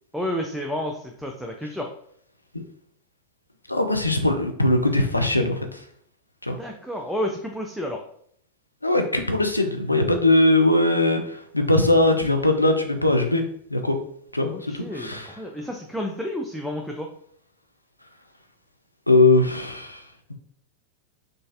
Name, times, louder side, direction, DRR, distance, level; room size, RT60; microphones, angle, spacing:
voice 1, 0.1-1.9 6.6-8.0 14.5-17.1, left 1 dB, ahead, 2 dB, 0.3 m, -30 dB
voice 2, 3.7-5.8 6.4-6.6 8.8-13.4 13.7-14.0 14.3-15.3 19.1-20.0, left 2 dB, 85° left, 5 dB, 0.4 m, -20 dB
3.8 x 2.5 x 2.4 m, 0.64 s
figure-of-eight pair, 90°, 0 cm